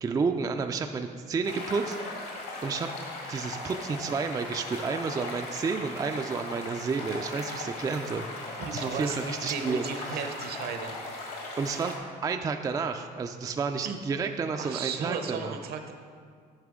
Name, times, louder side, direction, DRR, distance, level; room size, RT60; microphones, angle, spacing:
voice 1, 0.0-2.1 2.6-2.9 3.3-9.8 10.1-10.3 11.6-11.9 12.2-15.6, right 5 dB, 20° right, 6 dB, 0.3 m, -31 dB
sound 1, 1.4-12.0, left 2 dB, 70° left, 1.8 m, -38 dB
voice 2, 8.6-9.2 9.5-10.9 13.8-14.0 14.6-15.9, right 6 dB, 65° right, 6 dB, 0.8 m, -34 dB
9.4 x 5.8 x 3.7 m, 2.1 s
cardioid pair, 110°, 17 cm